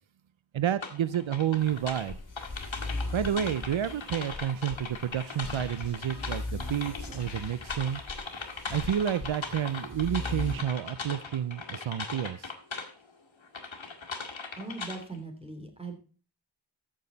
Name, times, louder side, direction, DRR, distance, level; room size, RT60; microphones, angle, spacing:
voice 1, 0.5-2.2 3.1-8.0 8.7-12.5, right 10 dB, 85° right, 15 dB, 0.6 m, -30 dB
sound 1, 0.8-12.9 13.4-15.2, left 4 dB, 85° left, 1.8 m, -39 dB
sound 2, 1.6-10.6, left 2 dB, 40° left, 3.1 m, -39 dB
sound 3, 5.2-8.1 8.4-9.8, left 5 dB, 60° left, 1.2 m, -46 dB
voice 2, 14.5-16.0, right 3 dB, 10° right, 4 dB, 3.1 m, -40 dB
14.0 x 6.4 x 4.0 m, 0.37 s
wide cardioid pair, 50°, 45 cm